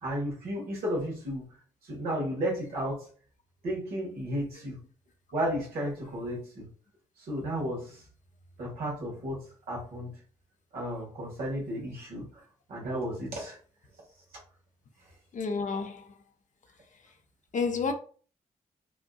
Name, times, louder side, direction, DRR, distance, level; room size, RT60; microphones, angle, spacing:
voice 1, 0.0-1.5 1.8-3.0 3.6-4.8 5.3-6.7 7.2-8.0 8.6-10.1 10.7-12.4 12.7-13.6, equal, 80° right, 1.8 m, -33 dB
voice 2, 15.3-16.2 17.0-17.1 17.5-17.9, left 5 dB, 55° left, 0.8 m, -30 dB
5.0 x 2.6 x 2.4 m
hypercardioid pair, 40°, 15 cm